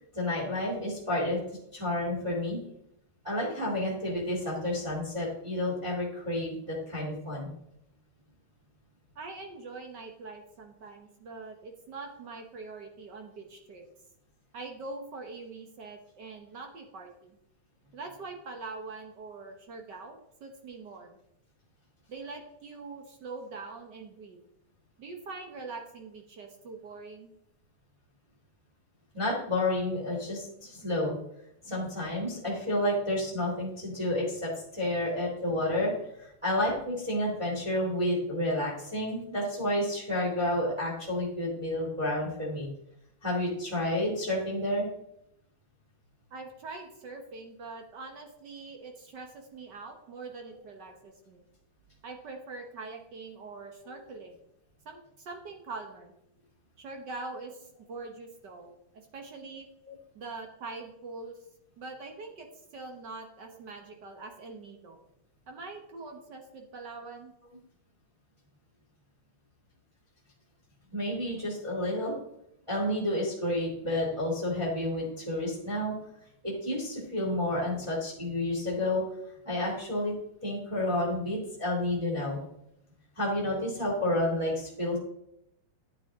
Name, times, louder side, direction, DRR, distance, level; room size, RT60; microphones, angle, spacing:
voice 1, 0.1-1.4 1.7-2.6 3.2-7.5 29.1-31.2 31.6-42.7 43.2-44.9 53.9-54.0 59.9-60.0 70.9-72.1 72.7-75.9 76.4-79.0 79.4-80.1 80.4-82.4 83.1-85.0, left 1 dB, 10° right, -5 dB, 2.9 m, -30 dB
voice 2, 9.1-13.8 14.5-17.4 17.9-21.2 22.1-24.4 25.0-27.3 46.3-51.4 52.0-54.4 54.8-56.1 56.8-59.7 60.1-61.4 61.8-62.5 62.7-65.0 65.5-67.3, right 3 dB, 60° right, 3 dB, 1.1 m, -43 dB
10.5 x 8.5 x 3.6 m, 0.77 s
omnidirectional pair, 3.3 m